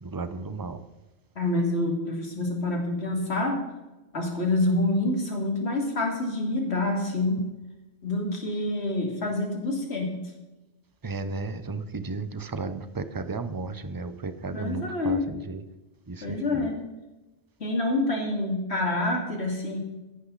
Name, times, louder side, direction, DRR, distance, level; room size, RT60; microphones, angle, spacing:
voice 1, 0.0-0.8 11.0-15.6 16.1-16.7, right 3 dB, 20° right, 0.6 m, -34 dB
voice 2, 1.4-3.6 4.1-7.4 8.0-10.2 14.5-15.3 16.2-16.8 17.6-19.8, left 2 dB, 60° left, 3.0 m, -27 dB
15.0 x 11.5 x 4.1 m
omnidirectional pair, 1.2 m